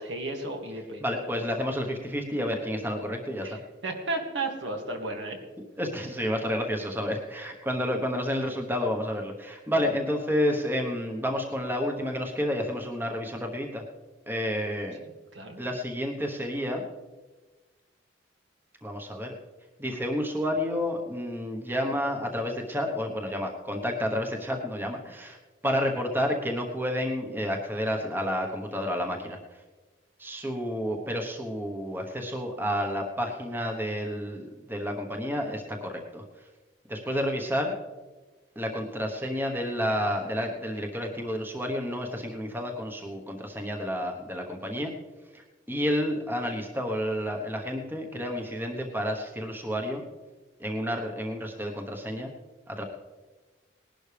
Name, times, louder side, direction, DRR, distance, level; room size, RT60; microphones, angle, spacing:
voice 1, 0.0-1.0 3.4-5.4 15.3-15.6, right 2 dB, 75° right, 2 dB, 2.3 m, -33 dB
voice 2, 1.0-3.6 5.8-13.8 14.3-15.0 15.6-16.8 18.8-19.3 19.8-25.4 25.6-29.4 30.2-36.2 36.9-37.7 38.6-44.9 45.3-50.0 50.6-52.3 52.7-52.8, equal, 10° right, 2 dB, 1.1 m, -30 dB
19.5 x 11.5 x 3.4 m, 1.3 s
head